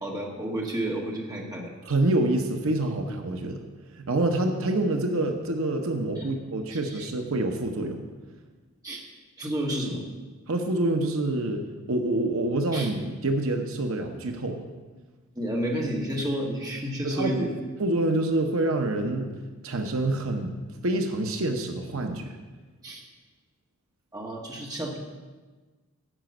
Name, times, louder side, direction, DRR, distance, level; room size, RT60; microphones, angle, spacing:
voice 1, 0.0-1.7 6.1-6.3 6.7-7.1 8.8-9.0 9.4-10.0 12.7-12.9 15.3-17.5 22.8-23.0 24.1-25.0, right 1 dB, 15° right, -2 dB, 1.4 m, -31 dB
voice 2, 1.8-3.6 4.0-8.0 10.5-14.6 17.0-17.5 17.8-19.3 19.6-20.6 20.8-22.3, right 2 dB, 70° right, 4 dB, 0.8 m, -27 dB
11.0 x 5.1 x 7.7 m, 1.3 s
head